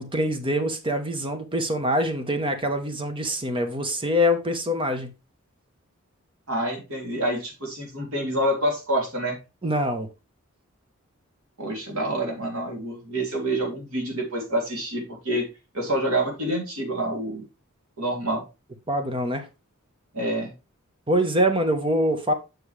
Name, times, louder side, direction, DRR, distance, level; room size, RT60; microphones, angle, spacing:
voice 1, 0.0-5.1 9.6-10.1 18.9-19.5 21.1-22.3, equal, 25° right, 1.0 m, -24 dB
voice 2, 6.5-9.4 11.6-15.5 15.7-17.4 18.0-18.4 20.1-20.5, right 1 dB, 85° right, 2.9 m, -27 dB
7.1 x 6.2 x 3.2 m
head